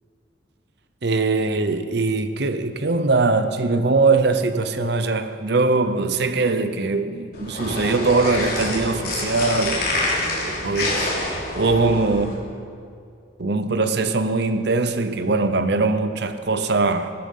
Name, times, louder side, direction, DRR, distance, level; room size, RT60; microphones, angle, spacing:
voice 1, 1.0-11.1 11.6-12.3 13.4-17.1, right 3 dB, 55° right, 10 dB, 0.8 m, -21 dB
sound 1, 7.3-12.3, left 2 dB, 45° left, 3.4 m, -26 dB
17.0 x 12.5 x 5.5 m, 2.3 s
head